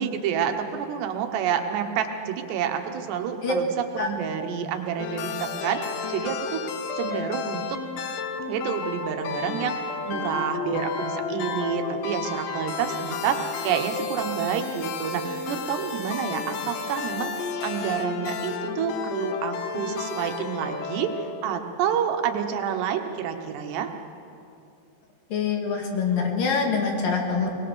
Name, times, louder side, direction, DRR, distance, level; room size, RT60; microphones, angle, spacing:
voice 1, 0.0-5.8 6.1-6.6 7.0-7.8 8.5-9.8 10.0-17.3 17.6-21.1 21.4-23.9, right 8 dB, 75° right, 6 dB, 3.3 m, -28 dB
sound 1, 5.0-21.6, left 5 dB, 75° left, 2.0 m, -32 dB
voice 2, 25.3-27.5, left 5 dB, 55° left, 1 dB, 3.4 m, -25 dB
23.5 x 20.5 x 6.3 m, 2.6 s
omnidirectional pair, 5.1 m